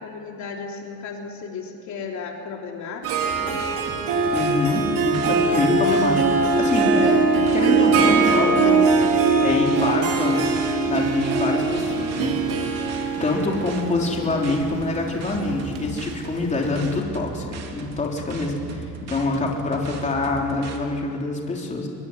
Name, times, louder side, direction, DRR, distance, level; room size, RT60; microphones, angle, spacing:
voice 1, 0.0-3.6, left 5 dB, 60° left, 1 dB, 3.3 m, -35 dB
Harp, 3.0-16.6, right 4 dB, 80° right, 3.6 m, -21 dB
sound 1, 3.3-20.8, right 4 dB, 50° right, 3.2 m, -39 dB
voice 2, 4.3-6.3 6.6-7.2 7.5-10.5 10.9-12.8 13.2-21.9, left 2 dB, 20° left, 0 dB, 3.7 m, -25 dB
23.5 x 23.0 x 9.9 m, 2.7 s
cardioid pair, 145°, 33 cm